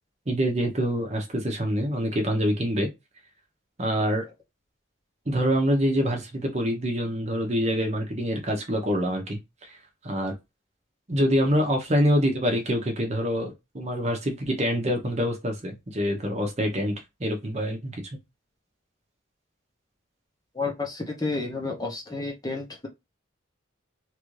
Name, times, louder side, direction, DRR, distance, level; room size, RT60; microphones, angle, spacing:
voice 1, 0.3-2.9 3.8-4.3 5.3-9.4 9.7-9.8 10.0-10.3 11.1-16.9 17.2-18.0, equal, 35° right, 0.8 m, -25 dB
voice 2, 20.5-22.9, left 3 dB, 20° left, 0.7 m, -31 dB
3.2 x 2.5 x 3.1 m
head